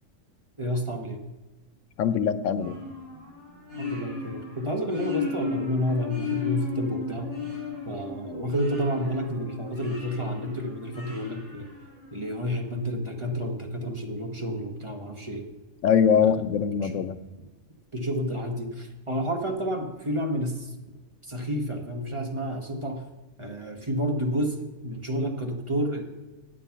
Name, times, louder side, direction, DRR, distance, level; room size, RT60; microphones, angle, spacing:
voice 1, 0.6-1.2 3.8-7.3 7.8-11.7 12.1-15.5 16.2-16.4 16.8-17.0 17.9-20.7 21.2-23.0 23.4-26.0, equal, 25° right, 2 dB, 1.0 m, -30 dB
voice 2, 2.0-2.8 15.8-17.2, left 7 dB, 85° left, 12 dB, 1.0 m, -22 dB
sound 1, 2.6-12.4, left 4 dB, 60° right, 4.8 m, -35 dB
9.1 x 7.5 x 5.8 m, 1.1 s
omnidirectional pair, 1.3 m